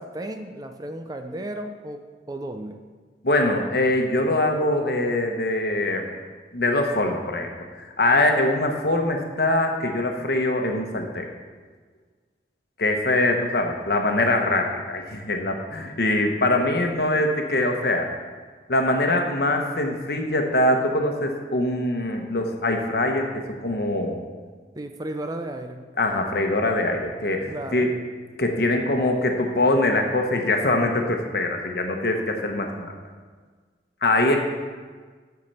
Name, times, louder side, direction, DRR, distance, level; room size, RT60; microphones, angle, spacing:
voice 1, 0.0-2.8 24.8-25.8 27.5-27.9, right 1 dB, 20° right, 6 dB, 0.5 m, -34 dB
voice 2, 3.2-6.0 6.5-7.5 7.8-11.3 12.8-18.1 18.7-24.2 26.0-27.9 28.4-32.9 34.0-34.4, left 1 dB, 60° left, 3 dB, 1.1 m, -23 dB
7.3 x 5.9 x 6.6 m, 1.5 s
head